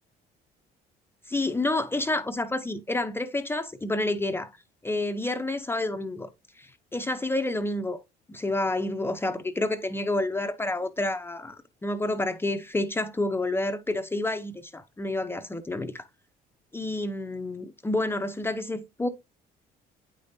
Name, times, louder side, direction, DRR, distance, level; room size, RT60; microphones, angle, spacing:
voice 1, 1.3-4.5 4.8-6.3 6.6-8.0 8.3-16.1 16.7-19.1, left 2 dB, 15° left, 0.6 m, -29 dB
8.9 x 5.1 x 2.6 m
cardioid pair, 110°, 17 cm